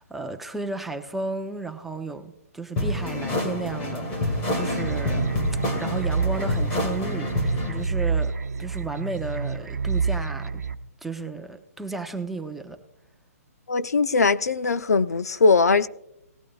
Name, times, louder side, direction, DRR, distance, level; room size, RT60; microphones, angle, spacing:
voice 1, 0.0-5.4 5.7-10.6 11.0-12.8, right 3 dB, ahead, 0.7 m, -34 dB
sound 1, 2.8-7.8, left 1 dB, 25° left, 2.2 m, -27 dB
sound 2, 4.7-10.7, right 5 dB, 90° right, 0.8 m, -28 dB
voice 2, 13.7-15.9, left 4 dB, 85° left, 0.7 m, -20 dB
18.5 x 13.0 x 2.4 m
hypercardioid pair, 150°, 8 cm